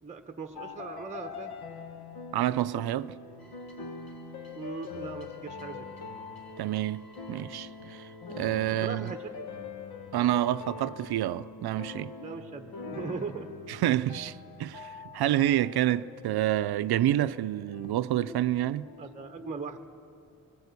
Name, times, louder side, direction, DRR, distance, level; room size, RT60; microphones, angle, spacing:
voice 1, 0.0-1.5 4.5-5.9 8.8-9.5 12.2-13.5 19.0-19.8, right 4 dB, 20° right, 0.9 m, -39 dB
sound 1, 0.5-19.7, left 4 dB, 80° left, 1.7 m, -44 dB
voice 2, 2.3-3.2 6.6-8.0 8.4-9.1 10.1-12.1 13.7-18.9, right 13 dB, 80° right, 0.6 m, -28 dB
sound 2, 3.4-9.3, equal, 65° left, 2.4 m, -58 dB
24.0 x 20.0 x 8.3 m
wide cardioid pair, 160°, 37 cm